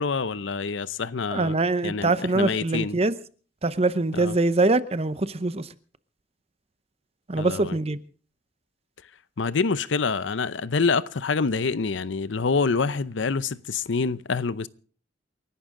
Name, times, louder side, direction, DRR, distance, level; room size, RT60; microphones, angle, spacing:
voice 1, 0.0-1.5 1.8-3.0 4.1-4.4 7.4-7.8 9.4-14.7, left 4 dB, 90° left, 0.7 m, -26 dB
voice 2, 1.3-3.1 3.6-5.7 7.3-8.0, right 2 dB, 35° right, 0.7 m, -23 dB
28.5 x 11.5 x 3.8 m
head